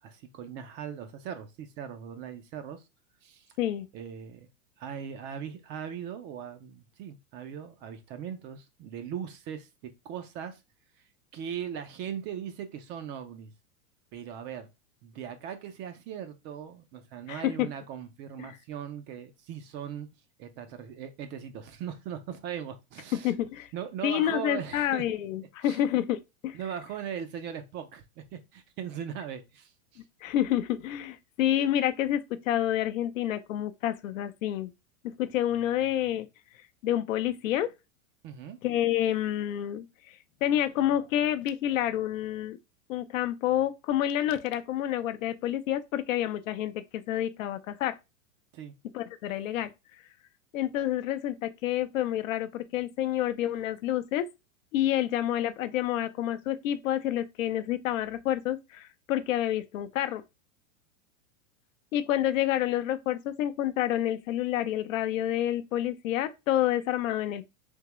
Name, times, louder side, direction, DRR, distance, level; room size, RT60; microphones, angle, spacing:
voice 1, 0.0-2.8 3.2-3.5 3.9-4.5 4.8-10.6 11.3-13.5 14.1-14.7 15.0-20.1 20.4-23.3 23.7-25.0 25.6-25.8 26.5-30.0 38.2-38.6 48.5-48.7, right 8 dB, 30° right, 0.4 m, -39 dB
voice 2, 17.3-17.7 18.4-18.5 23.2-23.7 24.0-26.2 26.4-26.6 30.2-34.7 35.0-36.3 36.8-37.7 38.6-39.8 40.4-42.6 42.9-48.0 48.9-49.7 50.5-54.2 54.7-60.2 61.9-67.5, left 12 dB, 75° left, 0.6 m, -28 dB
3.6 x 2.9 x 2.9 m
hypercardioid pair, 120°, 40 cm